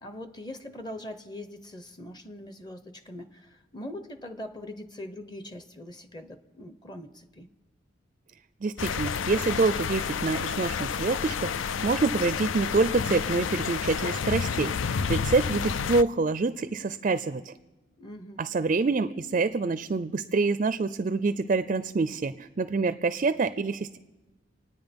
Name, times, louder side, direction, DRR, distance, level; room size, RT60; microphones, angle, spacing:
voice 1, 0.0-7.5 18.0-18.4, left 1 dB, 20° left, 0.8 m, -42 dB
voice 2, 8.6-11.5 11.8-17.5 18.4-24.0, right 3 dB, 40° right, 0.4 m, -26 dB
sound 1, 8.8-16.0, left 6 dB, 85° left, 0.4 m, -30 dB
27.0 x 9.5 x 5.2 m
head